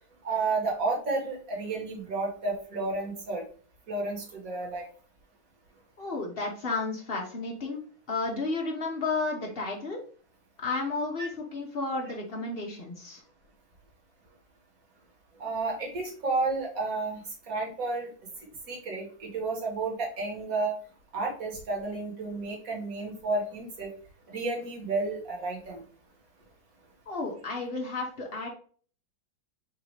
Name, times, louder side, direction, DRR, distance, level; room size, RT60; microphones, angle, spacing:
voice 1, 0.2-3.4 3.9-4.8 11.2-11.3 15.4-17.2 17.5-18.1 18.7-20.7 21.1-23.9 24.3-25.8, right 3 dB, 45° right, -1 dB, 1.8 m, -31 dB
voice 2, 6.0-7.8 8.1-10.0 10.6-13.2 27.1-28.5, left 3 dB, 45° left, 0 dB, 0.7 m, -32 dB
4.0 x 2.7 x 4.7 m, 0.44 s
omnidirectional pair, 2.2 m